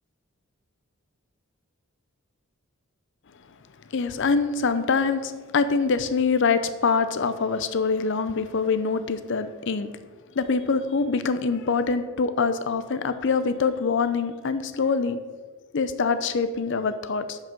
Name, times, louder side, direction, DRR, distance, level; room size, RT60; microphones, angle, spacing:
voice 1, 3.9-9.9 10.4-15.2 15.7-17.4, left 4 dB, 60° left, 11 dB, 0.6 m, -24 dB
9.0 x 5.5 x 5.3 m, 1.4 s
head